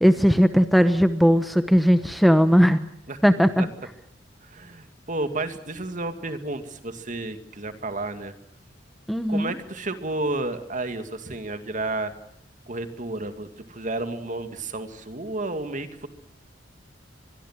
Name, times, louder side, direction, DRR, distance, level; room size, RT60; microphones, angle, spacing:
voice 1, 0.0-2.8 3.2-3.7 9.1-9.5, equal, ahead, 10 dB, 1.0 m, -18 dB
voice 2, 4.4-8.3 9.3-12.1 12.7-16.1, right 2 dB, 45° right, 8 dB, 2.3 m, -31 dB
24.0 x 22.0 x 7.4 m, 0.71 s
head